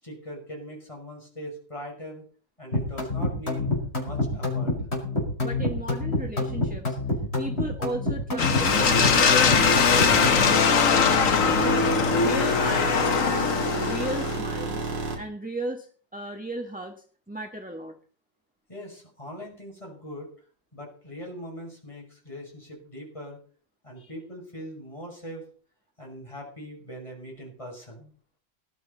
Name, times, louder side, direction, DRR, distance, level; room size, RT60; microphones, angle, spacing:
voice 1, 0.0-2.3 2.6-3.7 4.0-4.7 18.7-20.3 20.7-23.4 23.8-25.5 26.0-28.1, equal, 15° left, -1 dB, 6.5 m, -41 dB
sound 1, 2.7-10.5, left 2 dB, 30° left, 5.2 m, -27 dB
voice 2, 5.4-7.0 7.4-11.1 11.4-11.8 12.1-13.4 13.7-15.9 16.1-17.9 24.0-24.1, right 1 dB, 5° right, 3 dB, 1.3 m, -36 dB
sound 2, 8.4-14.4, left 6 dB, 50° left, 1.3 m, -21 dB
sound 3, 8.6-15.2, right 3 dB, 65° right, 3.8 m, -31 dB
19.5 x 12.5 x 4.1 m, 0.43 s
omnidirectional pair, 2.1 m